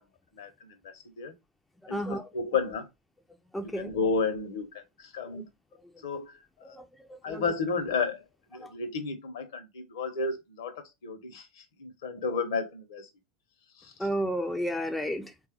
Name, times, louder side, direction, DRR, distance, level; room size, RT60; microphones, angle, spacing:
voice 1, 0.3-1.3 1.9-2.9 3.6-5.4 6.0-6.8 7.2-8.3 8.5-13.1 13.8-13.9, left 4 dB, 65° left, 0.8 m, -32 dB
voice 2, 1.8-2.3 3.5-3.9 5.3-5.4 5.9-6.0 6.6-7.5 8.5-8.7 14.0-15.3, equal, 5° left, 0.4 m, -33 dB
3.3 x 2.3 x 2.9 m
figure-of-eight pair, 80°, 2 cm